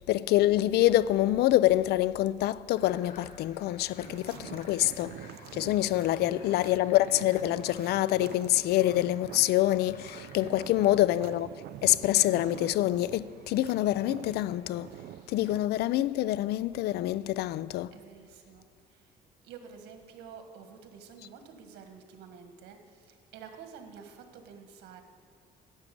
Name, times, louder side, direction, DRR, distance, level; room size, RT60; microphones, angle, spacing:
voice 1, 0.1-5.2 5.5-11.5 11.8-14.9 15.3-17.9, left 14 dB, 70° left, 0.4 m, -26 dB
sound 1, 2.7-10.4, left 4 dB, 50° left, 1.6 m, -54 dB
sound 2, 4.0-15.7, right 11 dB, 70° right, 0.5 m, -46 dB
voice 2, 17.9-19.1 19.4-25.0, right 6 dB, 85° right, 1.6 m, -49 dB
12.0 x 7.2 x 9.2 m
cardioid pair, 110°, 17 cm